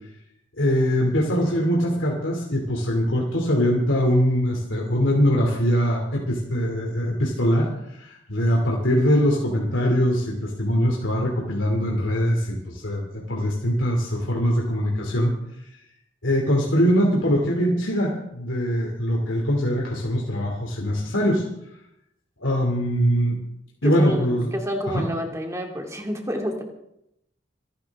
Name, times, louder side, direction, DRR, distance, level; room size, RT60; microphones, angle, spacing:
voice 1, 0.6-15.3 16.2-21.4 22.4-23.4 23.8-24.5 24.9-25.0, equal, 85° left, -1 dB, 2.6 m, -22 dB
voice 2, 23.8-26.6, equal, 15° right, 2 dB, 2.3 m, -29 dB
26.5 x 11.5 x 3.6 m, 0.82 s
head